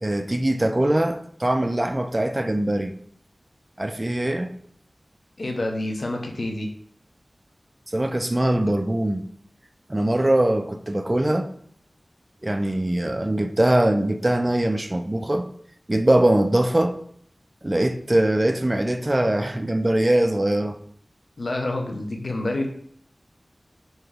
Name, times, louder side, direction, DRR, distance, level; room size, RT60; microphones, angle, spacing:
voice 1, 0.0-2.9 3.8-4.5 7.9-9.3 9.9-11.5 12.4-15.5 15.9-17.0 17.6-20.8, right 1 dB, 30° right, 0.3 m, -22 dB
voice 2, 5.4-6.7 21.4-22.7, left 2 dB, 70° left, 0.5 m, -28 dB
3.0 x 2.4 x 3.5 m
wide cardioid pair, 40°, 0 cm